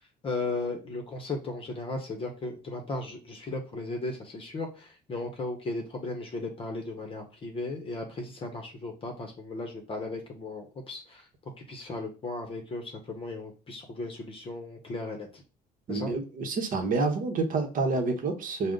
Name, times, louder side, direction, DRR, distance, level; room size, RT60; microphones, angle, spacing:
voice 1, 0.2-15.4 15.9-16.1, left 2 dB, 35° left, 2 dB, 0.7 m, -36 dB
voice 2, 15.9-18.7, right 3 dB, 55° right, 4 dB, 0.9 m, -28 dB
4.9 x 2.1 x 3.7 m, 0.34 s
cardioid pair, 110°, 17 cm